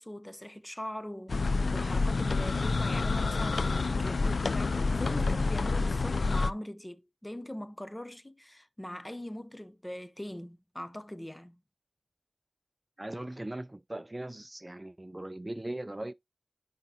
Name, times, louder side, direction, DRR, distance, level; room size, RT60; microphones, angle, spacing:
voice 1, 0.0-11.6, left 1 dB, 20° left, 0.6 m, -41 dB
sound 1, 1.3-6.5, left 3 dB, 80° left, 0.3 m, -28 dB
voice 2, 13.0-16.1, right 1 dB, 25° right, 0.3 m, -39 dB
10.0 x 3.6 x 2.7 m
cardioid pair, 45°, 0 cm